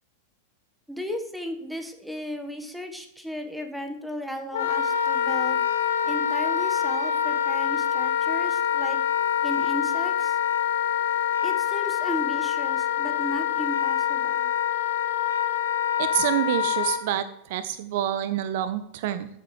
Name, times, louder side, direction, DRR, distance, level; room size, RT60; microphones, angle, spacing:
voice 1, 0.9-5.6 6.0-9.0 9.4-10.4 11.4-14.5, left 1 dB, ahead, 5 dB, 1.4 m, -35 dB
Wind instrument woodwind instrument, 4.5-17.0, left 9 dB, 60° left, 1.0 m, -25 dB
voice 2, 16.0-19.3, right 12 dB, 50° right, 14 dB, 0.5 m, -27 dB
14.5 x 7.4 x 3.2 m, 0.81 s
figure-of-eight pair, 90°, 0 cm